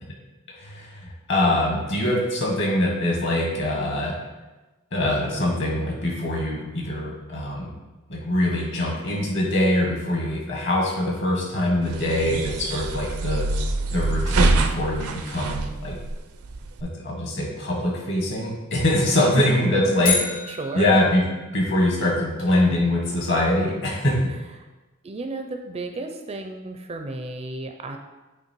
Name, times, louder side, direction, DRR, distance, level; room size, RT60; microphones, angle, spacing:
voice 1, 0.6-4.2 4.9-7.7 8.1-13.5 13.9-16.0 16.8-20.2 20.7-21.2 21.5-24.2, left 1 dB, 55° left, -3 dB, 1.9 m, -23 dB
sound 1, 11.8-16.8, right 2 dB, 80° right, 0.5 m, -25 dB
voice 2, 12.0-12.5 19.1-20.2 20.5-21.0 24.1-24.2 24.6-24.7 25.0-28.0, right 2 dB, 25° right, 5 dB, 0.4 m, -33 dB
sound 2, 20.0-22.2, left 5 dB, 75° left, 1.5 m, -30 dB
8.4 x 3.2 x 4.5 m, 1.1 s
head